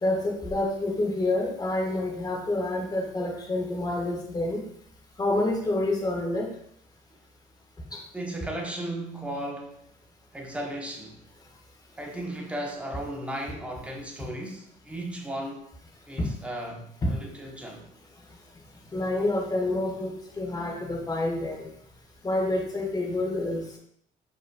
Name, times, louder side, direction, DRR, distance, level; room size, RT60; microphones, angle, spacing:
voice 1, 0.0-4.6 5.2-6.5 16.2-16.3 17.0-17.1 18.9-21.7 22.2-23.8, left 2 dB, 25° left, 1.3 m, -28 dB
voice 2, 8.1-9.8 10.3-11.2 12.0-15.7 16.1-17.8, right 1 dB, 5° right, 0.9 m, -35 dB
5.3 x 4.2 x 2.2 m
cardioid pair, 110°, 17 cm